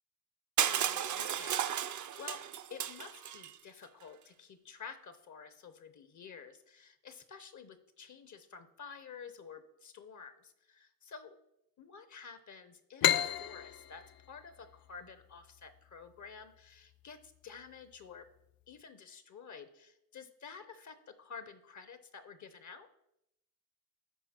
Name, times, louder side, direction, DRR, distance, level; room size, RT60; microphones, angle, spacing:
voice 1, 0.6-2.4 2.7-11.3 11.8-18.3 18.7-22.9, left 6 dB, 55° left, 10 dB, 0.8 m, -51 dB
Crushing, 0.6-3.5, right 9 dB, 60° right, 0.5 m, -34 dB
sound 1, 13.0-16.4, left 10 dB, 85° left, 0.5 m, -33 dB
11.0 x 4.4 x 4.3 m, 0.83 s
wide cardioid pair, 110°, 35 cm